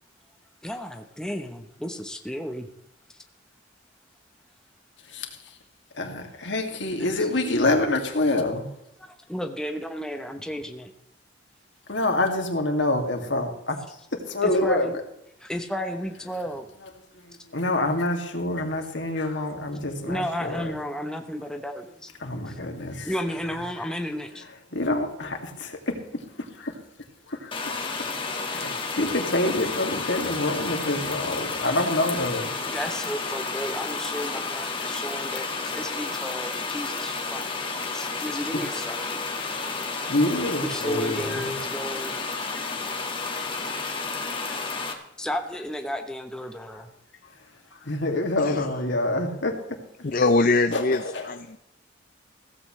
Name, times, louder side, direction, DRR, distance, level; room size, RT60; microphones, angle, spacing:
voice 1, 0.6-2.7 7.2-7.3 9.3-10.9 14.4-15.0 15.4-16.7 20.1-22.1 22.5-22.6 23.0-24.4 32.7-35.4 35.7-37.4 37.9-39.2 40.6-42.2 45.2-46.9, equal, 5° left, 5 dB, 1.0 m, -33 dB
voice 2, 6.0-8.7 11.9-13.8 14.3-14.9 17.5-20.7 22.2-23.1 24.7-25.8 26.6-26.7 27.3-27.5 28.5-32.5 40.1-41.5 42.5-42.7 47.9-49.5 50.7-51.3, left 2 dB, 70° left, 3 dB, 2.5 m, -26 dB
sound 1, 27.5-44.9, left 4 dB, 25° left, 1.9 m, -31 dB
voice 3, 50.0-51.0 51.3-51.6, left 3 dB, 45° left, 9 dB, 0.6 m, -22 dB
16.5 x 15.0 x 3.3 m, 0.78 s
head